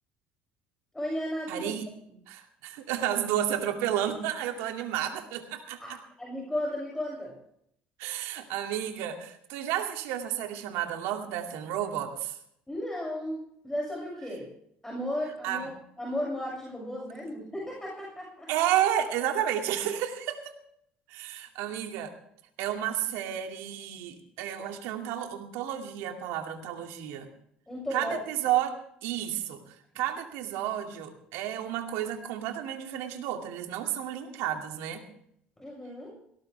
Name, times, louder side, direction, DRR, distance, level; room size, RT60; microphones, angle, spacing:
voice 1, 0.9-1.8 5.8-7.4 12.7-14.5 14.8-15.7 16.0-18.5 27.7-28.2 35.6-36.1, left 1 dB, 10° left, -3 dB, 6.6 m, -34 dB
voice 2, 1.5-1.9 2.3-5.8 8.0-12.4 15.4-15.7 18.5-20.5 21.1-22.1 22.6-27.3 27.9-35.0, right 11 dB, 75° right, 5 dB, 2.4 m, -31 dB
18.0 x 17.5 x 3.4 m, 0.70 s
hypercardioid pair, 65°, 4 cm